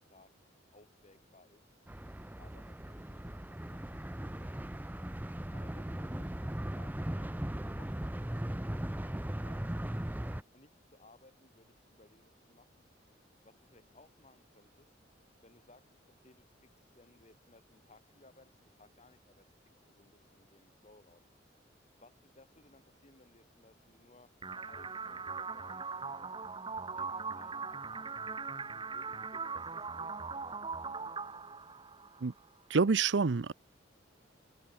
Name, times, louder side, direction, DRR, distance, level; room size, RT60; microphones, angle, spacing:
voice 1, 0.7-1.8 2.4-5.1 5.5-10.0 10.5-12.8 13.4-15.0 15.4-21.2 21.9-26.6 26.9-28.5 28.9-30.6, left 2 dB, 40° left, 6.0 m, -62 dB
sound 1, 1.9-10.4, right 1 dB, 10° right, 0.7 m, -38 dB
sound 2, 24.4-32.4, right 4 dB, 25° right, 1.9 m, -40 dB
voice 2, 32.7-33.5, right 4 dB, 75° right, 0.6 m, -27 dB
head